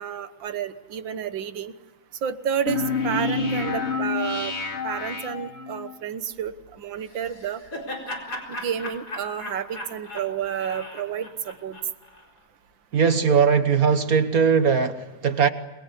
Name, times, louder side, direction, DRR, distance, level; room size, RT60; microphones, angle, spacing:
voice 1, 0.0-1.7 2.2-4.6 4.8-7.6 8.5-11.8, right 8 dB, 90° right, 2.0 m, -30 dB
sound 1, 2.7-5.9, left 4 dB, 35° left, 2.6 m, -28 dB
Laughter, 7.1-12.2, left 1 dB, 55° left, 4.9 m, -37 dB
voice 2, 12.9-15.5, right 6 dB, 55° right, 1.6 m, -20 dB
29.0 x 22.5 x 8.3 m
omnidirectional pair, 2.0 m